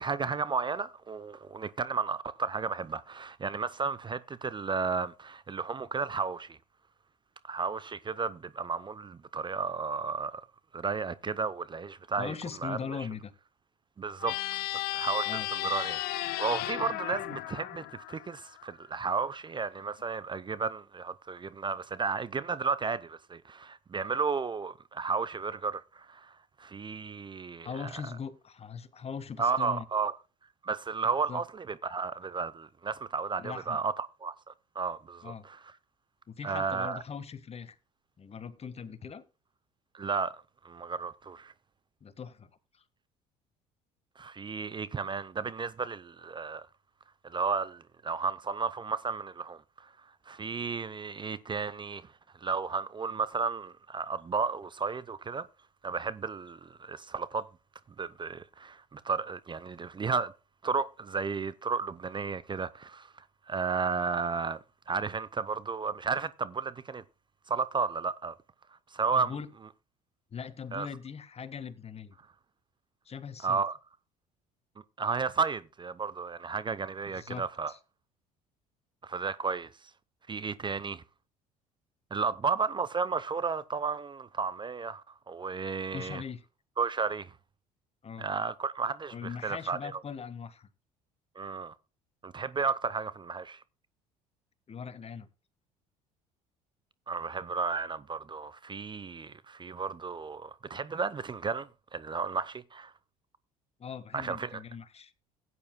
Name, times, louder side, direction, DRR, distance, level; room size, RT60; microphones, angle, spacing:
voice 1, 0.0-6.6 7.4-10.5 10.7-12.3 12.6-12.8 14.0-14.4 14.7-27.9 29.4-30.1 30.6-35.6 36.4-37.0 39.9-41.5 44.2-46.7 47.2-49.9 50.3-52.1 52.4-55.5 55.8-57.5 58.0-60.3 60.6-64.6 64.9-67.0 67.5-68.3 68.9-69.3 70.7-70.9 73.4-73.8 75.0-77.7 79.0-79.9 80.3-81.0 82.1-86.2 86.8-87.3 88.2-90.0 91.4-91.8 92.2-93.6 97.1-102.9 104.1-104.6, right 5 dB, 25° right, 0.7 m, -33 dB
voice 2, 12.2-13.3 15.3-15.5 27.6-29.8 31.3-31.4 33.4-33.8 35.2-35.5 36.3-37.8 38.2-39.2 42.0-42.8 69.1-69.5 70.3-72.2 73.0-73.6 77.1-77.8 85.9-86.4 88.0-88.3 89.1-90.7 94.7-95.3 103.8-105.1, left 6 dB, 35° left, 1.5 m, -40 dB
sound 1, 14.2-18.7, left 16 dB, 60° left, 0.8 m, -34 dB
16.0 x 9.8 x 2.2 m
hypercardioid pair, 65°, 18 cm